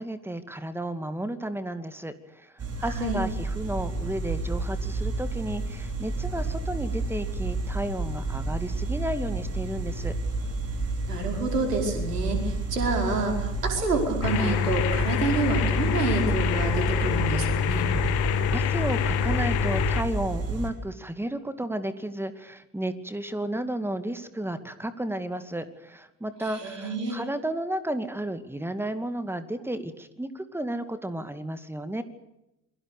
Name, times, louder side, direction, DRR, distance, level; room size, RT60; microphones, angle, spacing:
voice 1, 0.0-2.1 2.4-2.5 2.8-10.1 18.2-32.0, right 1 dB, 5° right, 11 dB, 2.4 m, -33 dB
sound 1, 2.6-20.7, right 2 dB, 30° right, 5.7 m, -31 dB
voice 2, 2.8-3.2 11.1-17.9 26.5-27.2, right 3 dB, 80° right, 3 dB, 5.1 m, -28 dB
sound 2, 14.2-20.0, left 8 dB, 55° left, 2.2 m, -26 dB
28.5 x 22.5 x 6.8 m, 0.89 s
figure-of-eight pair, 55°, 47 cm